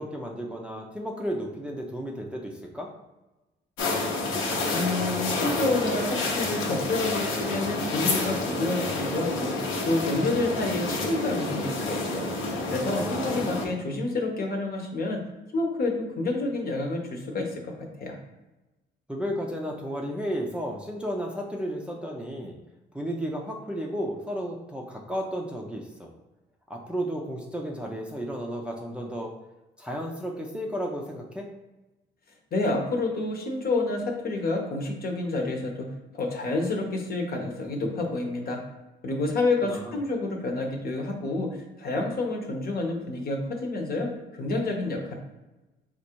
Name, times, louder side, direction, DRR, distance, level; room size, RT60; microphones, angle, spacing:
voice 1, 0.0-2.9 12.9-13.5 19.1-22.6 22.9-26.1 26.7-29.3 29.8-31.5 39.6-40.0, equal, 5° right, -1 dB, 0.6 m, -33 dB
sound 1, 3.8-13.7, left 2 dB, 85° left, 1.0 m, -29 dB
voice 2, 4.4-9.6 9.9-12.3 12.7-15.2 15.5-18.2 32.5-35.9 36.1-38.6 39.0-45.2, left 2 dB, 50° left, 2 dB, 1.0 m, -29 dB
4.0 x 2.5 x 4.5 m, 1.1 s
cardioid pair, 90°, 20 cm